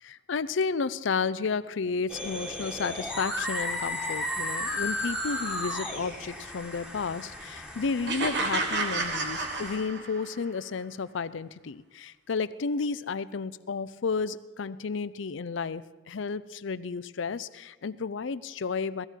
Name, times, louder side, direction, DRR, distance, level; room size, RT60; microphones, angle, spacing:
voice 1, 0.0-19.1, left 5 dB, 75° left, 15 dB, 0.5 m, -32 dB
sound 1, 2.1-9.8, left 1 dB, 5° right, 1.5 m, -35 dB
sound 2, 8.1-10.4, right 3 dB, 60° right, 1.6 m, -30 dB
17.5 x 14.0 x 4.5 m, 1.2 s
head